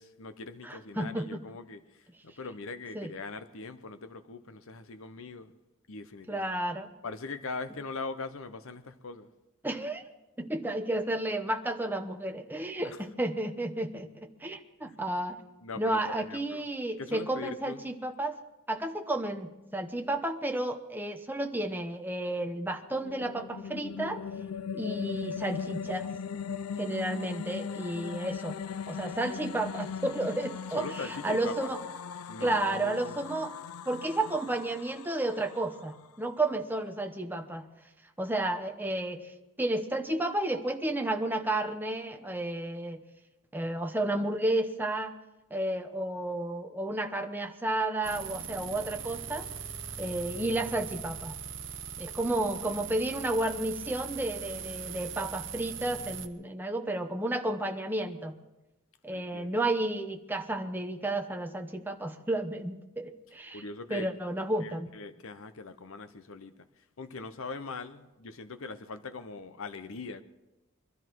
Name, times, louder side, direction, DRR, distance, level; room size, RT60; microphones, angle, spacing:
voice 1, 0.0-5.5 5.9-6.6 7.0-9.3 12.8-13.0 14.8-15.0 15.6-16.6 17.0-17.8 30.8-31.7 32.3-33.2 52.3-53.0 59.1-59.6 63.5-64.1 64.6-66.7 67.0-70.2, left 3 dB, 65° left, 11 dB, 0.9 m, -41 dB
voice 2, 0.6-1.4 2.9-3.1 6.3-6.9 9.6-10.0 10.4-15.4 15.8-18.4 18.7-24.2 24.7-26.1 26.8-28.6 28.9-31.8 32.4-33.5 33.9-37.7 38.2-43.0 43.5-45.2 45.5-49.5 50.0-51.4 52.0-58.4 59.0-63.6 63.9-64.9, right 1 dB, 10° right, 5 dB, 0.9 m, -32 dB
sound 1, 22.7-36.1, left 7 dB, 80° left, 0.5 m, -39 dB
sound 2, 48.0-56.3, right 7 dB, 60° right, 0.9 m, -40 dB
22.0 x 13.0 x 4.7 m, 1.0 s
head